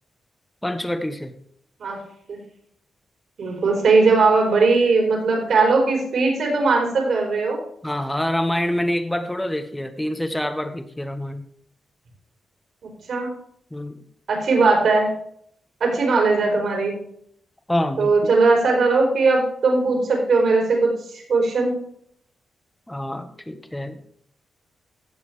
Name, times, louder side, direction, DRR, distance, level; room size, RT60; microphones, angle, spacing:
voice 1, 0.6-1.3 7.8-11.5 13.7-14.0 17.7-18.3 22.9-24.0, left 1 dB, 10° left, 7 dB, 1.3 m, -26 dB
voice 2, 3.4-7.6 13.1-13.3 14.3-15.1 15.8-16.9 18.0-21.7, right 3 dB, 65° right, 0 dB, 4.4 m, -19 dB
17.0 x 6.8 x 3.4 m, 0.66 s
cardioid pair, 105°, 0 cm